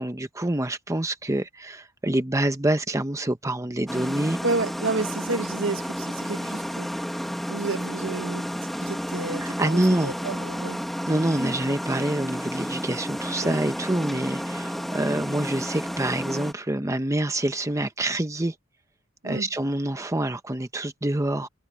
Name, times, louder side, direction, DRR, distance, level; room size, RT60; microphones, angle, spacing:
voice 1, 0.0-4.4 9.4-10.1 11.1-18.5 19.2-21.5, right 1 dB, 15° right, 0.9 m, -26 dB
sound 1, 3.9-16.5, equal, ahead, 1.5 m, -31 dB
voice 2, 4.4-8.5 8.8-10.8 13.4-13.6 19.2-19.5, right 3 dB, 60° right, 1.2 m, -31 dB
head